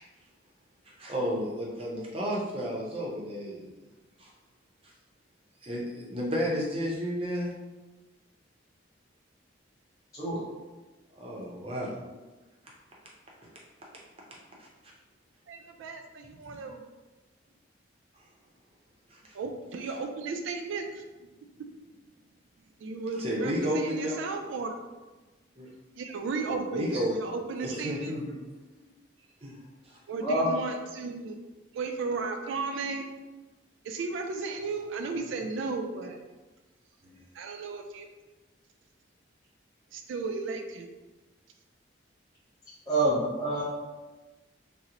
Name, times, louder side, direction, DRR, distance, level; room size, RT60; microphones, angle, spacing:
voice 1, 0.9-3.8 4.2-4.3 4.8-4.9 5.6-7.5 11.1-11.9 14.6-14.7 16.5-16.6 19.1-19.4 23.2-24.2 25.6-25.7 26.5-27.1 27.7-28.3 28.8-28.9 29.4-29.6 29.8-30.0 37.0-37.2, equal, 30° right, -3 dB, 0.6 m, -32 dB
voice 2, 15.5-16.8 19.3-21.0 22.8-24.8 25.9-28.1 30.1-31.4 31.7-33.1 33.8-36.2 37.3-38.1 39.9-40.9, right 4 dB, 80° right, 4 dB, 0.3 m, -34 dB
voice 3, 42.9-43.6, right 2 dB, 20° left, -11 dB, 0.6 m, -26 dB
2.9 x 2.0 x 3.7 m, 1.2 s
head